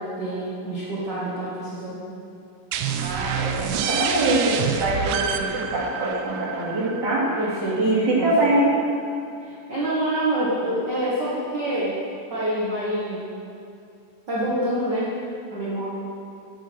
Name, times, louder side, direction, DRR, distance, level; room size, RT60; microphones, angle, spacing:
voice 1, 0.0-2.0 7.4-8.3 9.4-12.0 12.3-13.3 14.3-15.1 15.5-15.8, right 1 dB, 55° right, -8 dB, 1.2 m, -27 dB
sound 1, 2.7-8.2, right 8 dB, 80° right, 1.9 m, -28 dB
voice 2, 3.0-7.3 7.7-8.8, right 1 dB, 35° right, -8 dB, 2.3 m, -23 dB
8.9 x 6.0 x 6.1 m, 2.6 s
omnidirectional pair, 4.1 m